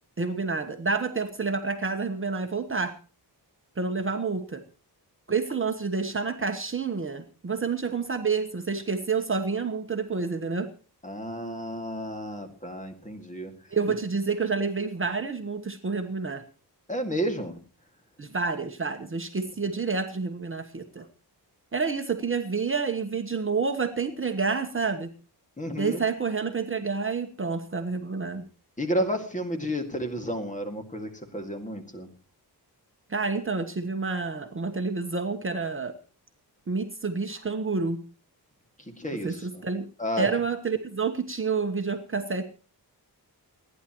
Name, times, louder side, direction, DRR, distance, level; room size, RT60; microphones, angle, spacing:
voice 1, 0.2-2.9 3.8-4.6 5.3-10.7 13.7-16.4 18.2-21.1 21.7-25.1 25.8-28.4 33.1-35.9 36.7-38.0 39.2-39.9 40.2-42.4, right 4 dB, 30° right, 5 dB, 1.1 m, -29 dB
voice 2, 11.0-13.5 16.9-17.5 25.6-26.0 28.8-32.1 39.0-39.6 40.0-40.3, equal, 20° left, 5 dB, 2.1 m, -31 dB
29.0 x 10.0 x 3.0 m, 0.37 s
wide cardioid pair, 145°, 40 cm